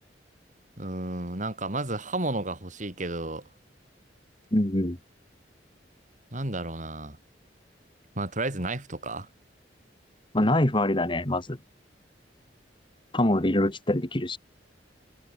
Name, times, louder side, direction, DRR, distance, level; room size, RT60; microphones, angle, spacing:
voice 1, 0.8-3.4 6.3-7.2 8.2-9.3, right 2 dB, 45° right, 4.2 m, -32 dB
voice 2, 4.5-5.0 10.3-11.6 13.1-14.4, left 1 dB, 30° left, 2.1 m, -24 dB
head